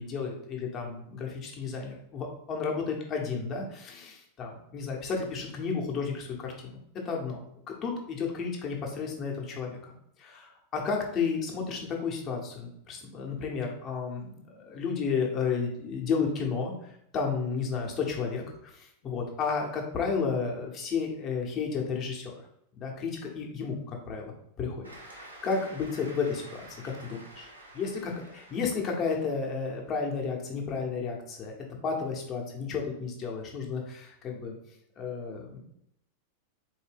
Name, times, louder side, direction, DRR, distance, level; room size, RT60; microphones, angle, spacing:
voice 1, 0.0-6.7 7.0-9.9 10.2-22.5 22.8-24.3 24.6-31.5 31.8-34.5 35.0-35.6, left 5 dB, 30° left, 0 dB, 1.0 m, -32 dB
Cheering / Applause, 24.8-29.8, right 2 dB, 80° right, 0.9 m, -50 dB
4.2 x 2.7 x 3.4 m, 0.74 s
figure-of-eight pair, 90°, 0 cm